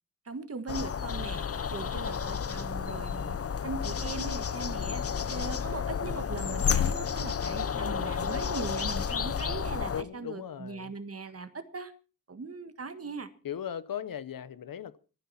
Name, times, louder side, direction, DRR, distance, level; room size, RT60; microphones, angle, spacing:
voice 1, 0.2-1.4 1.7-3.4 3.6-5.0 5.3-11.9 12.3-13.3, right 4 dB, 45° right, 1.7 m, -39 dB
sound 1, 0.7-10.0, left 7 dB, 45° left, 0.7 m, -31 dB
voice 2, 9.9-10.9 13.4-15.0, left 9 dB, 75° left, 0.9 m, -38 dB
25.0 x 9.7 x 4.2 m
wide cardioid pair, 110°, 34 cm